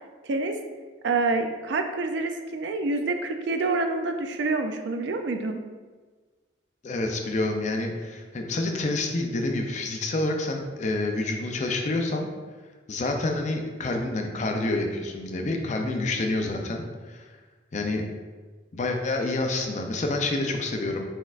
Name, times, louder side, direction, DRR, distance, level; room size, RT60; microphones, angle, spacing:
voice 1, 0.2-0.6 1.0-5.6, right 3 dB, 65° right, 6 dB, 0.4 m, -27 dB
voice 2, 6.8-12.3 12.9-17.3 17.7-18.0 18.7-21.0, left 2 dB, 35° left, 3 dB, 0.4 m, -28 dB
4.5 x 4.3 x 2.4 m, 1.4 s
head